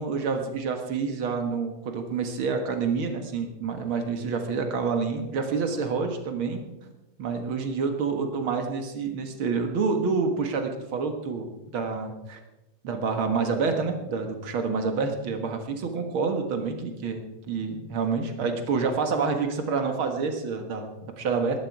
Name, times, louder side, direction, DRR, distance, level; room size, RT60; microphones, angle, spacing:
voice 1, 0.0-6.6 7.2-12.4 12.8-21.6, right 5 dB, 50° right, 5 dB, 1.6 m, -28 dB
20.0 x 11.5 x 4.7 m, 1.0 s
omnidirectional pair, 4.1 m